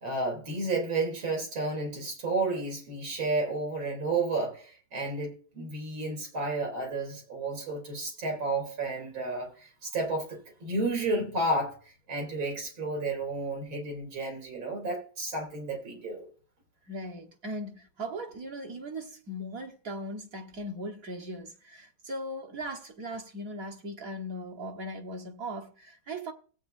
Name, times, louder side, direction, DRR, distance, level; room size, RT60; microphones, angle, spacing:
voice 1, 0.0-16.3, right 2 dB, 80° right, 4.1 m, -32 dB
voice 2, 16.9-26.3, equal, 45° right, 1.8 m, -38 dB
17.5 x 8.7 x 2.7 m
omnidirectional pair, 2.2 m